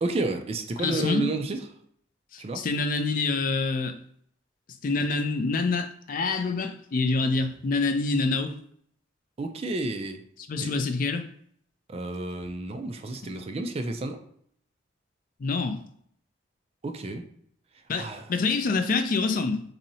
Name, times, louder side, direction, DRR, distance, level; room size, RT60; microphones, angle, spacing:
voice 1, 0.0-1.6 2.4-2.6 9.4-10.2 10.6-10.7 11.9-14.2 16.8-17.2 18.0-18.3, right 2 dB, 35° right, 7 dB, 0.3 m, -31 dB
voice 2, 0.8-1.3 2.3-3.9 4.8-8.5 10.5-11.2 13.2-13.3 15.4-15.8 17.9-19.6, left 3 dB, 45° left, 7 dB, 0.4 m, -26 dB
4.2 x 2.7 x 2.7 m, 0.65 s
head